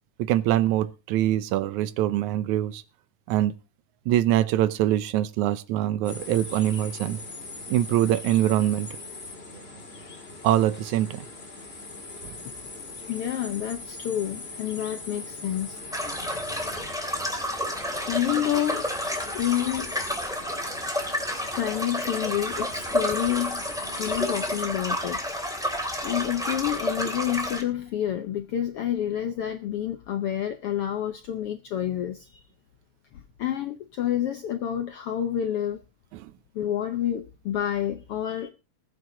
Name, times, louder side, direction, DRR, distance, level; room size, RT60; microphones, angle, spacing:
voice 1, 0.2-2.8 3.3-3.5 4.1-7.2 7.7-8.9 10.4-11.3 12.2-12.4 36.1-36.3, right 13 dB, 75° right, 2.0 m, -24 dB
sound 1, 6.0-24.7, left 3 dB, 25° left, 1.8 m, -41 dB
voice 2, 13.1-15.8 18.0-18.9 19.3-19.9 21.5-23.6 24.0-25.3 26.0-32.4 33.1-35.8 36.5-38.5, left 11 dB, 80° left, 1.2 m, -29 dB
sound 2, 15.9-27.6, equal, ahead, 2.2 m, -30 dB
20.5 x 7.9 x 3.8 m
omnidirectional pair, 3.7 m